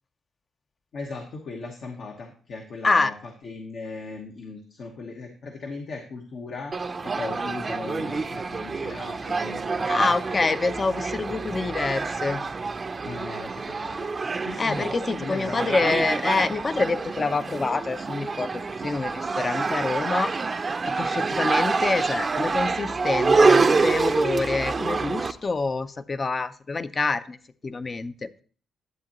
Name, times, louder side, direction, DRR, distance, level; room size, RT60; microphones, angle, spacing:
voice 1, 0.9-6.8 7.0-10.2 13.0-14.1 14.4-14.9 15.2-16.1, left 3 dB, 65° left, 2 dB, 1.1 m, -38 dB
sound 1, 6.7-25.3, right 4 dB, 35° right, 0.5 m, -26 dB
voice 2, 9.9-12.4 14.6-20.3 20.8-27.4 27.6-28.3, left 3 dB, 35° left, 14 dB, 0.5 m, -26 dB
11.0 x 7.5 x 2.9 m, 0.41 s
cardioid pair, 80°, 0 cm